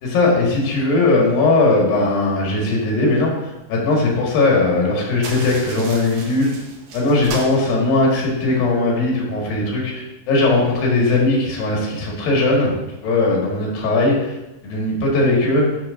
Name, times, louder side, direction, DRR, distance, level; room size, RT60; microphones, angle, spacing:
voice 1, 0.0-6.6 6.9-12.7 13.0-14.4 14.6-15.7, left 2 dB, 80° left, -2 dB, 3.4 m, -18 dB
sound 1, 5.2-8.6, right 3 dB, 65° right, 1.8 m, -35 dB
11.5 x 5.7 x 2.6 m, 0.97 s
omnidirectional pair, 4.1 m